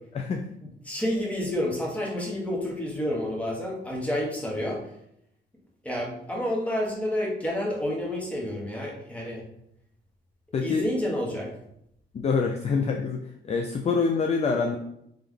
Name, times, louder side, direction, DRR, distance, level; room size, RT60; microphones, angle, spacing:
voice 1, 0.1-0.4 10.5-10.9 12.1-14.8, left 5 dB, 35° left, 3 dB, 0.4 m, -26 dB
voice 2, 0.8-4.8 5.8-9.4 10.6-11.5, left 1 dB, 5° left, -2 dB, 1.3 m, -29 dB
3.4 x 3.2 x 3.6 m, 0.76 s
cardioid pair, 90°, 20 cm